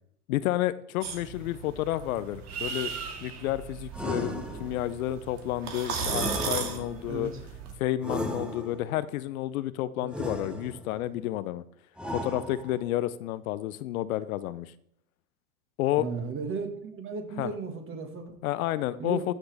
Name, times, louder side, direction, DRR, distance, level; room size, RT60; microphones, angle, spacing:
voice 1, 0.3-2.9 3.2-7.3 7.8-11.6 12.1-14.7 15.8-16.1 17.4-17.5 18.4-19.3, left 14 dB, 70° left, 15 dB, 0.6 m, -30 dB
sound 1, 1.0-7.7, right 5 dB, 85° right, 2.3 m, -36 dB
sound 2, 3.9-5.0 6.1-7.1 8.0-9.0 10.1-11.0 12.0-12.9, equal, ahead, 0.9 m, -35 dB
voice 2, 7.1-7.4 10.0-10.1 16.0-18.3 19.0-19.3, right 4 dB, 30° right, 5 dB, 1.8 m, -35 dB
13.5 x 5.9 x 3.4 m, 0.69 s
hypercardioid pair, 110°, 44 cm